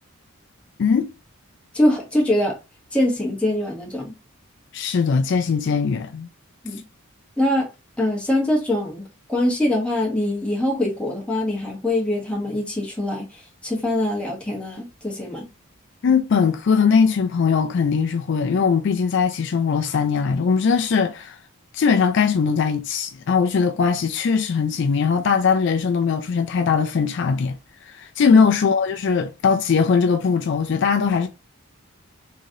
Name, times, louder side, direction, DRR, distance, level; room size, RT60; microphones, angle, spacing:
voice 1, 0.8-1.1 4.7-6.3 16.0-21.4 21.7-27.6 27.9-31.3, left 5 dB, 55° left, 0.3 m, -20 dB
voice 2, 1.7-2.6 2.9-4.1 6.6-6.8 7.4-7.7 8.0-9.0 9.3-15.5 28.3-28.4, left 1 dB, 5° left, 1.1 m, -23 dB
3.7 x 3.1 x 2.7 m
head